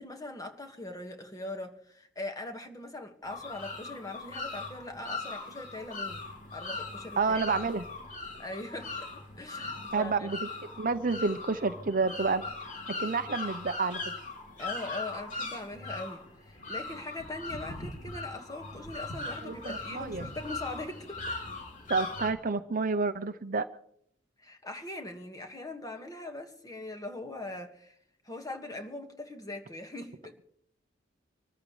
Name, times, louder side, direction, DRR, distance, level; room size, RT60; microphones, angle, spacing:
voice 1, 0.0-6.2 6.5-7.4 8.4-10.3 14.6-21.4 24.4-28.0 28.2-30.4, left 2 dB, 20° left, 1.8 m, -41 dB
sound 1, 3.2-22.3, left 3 dB, 45° left, 3.3 m, -40 dB
voice 2, 7.2-7.8 9.9-10.4 10.8-12.4 13.0-14.0 19.4-20.3 21.9-23.7, right 4 dB, 45° right, 0.7 m, -29 dB
26.0 x 14.0 x 3.3 m
head